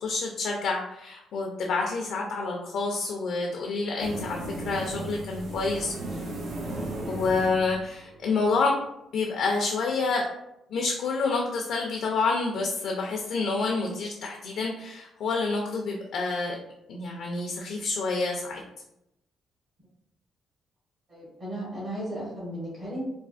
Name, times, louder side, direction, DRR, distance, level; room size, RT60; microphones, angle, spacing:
voice 1, 0.0-5.9 7.1-8.7 9.1-10.3 10.7-16.6 16.9-18.6, left 3 dB, 70° left, 0 dB, 0.4 m, -28 dB
sound 1, 4.0-8.6, right 2 dB, 70° right, 0.6 m, -36 dB
voice 2, 21.1-23.1, right 1 dB, 50° right, -7 dB, 1.2 m, -35 dB
3.3 x 2.0 x 2.4 m, 0.84 s
cardioid pair, 90°, 0 cm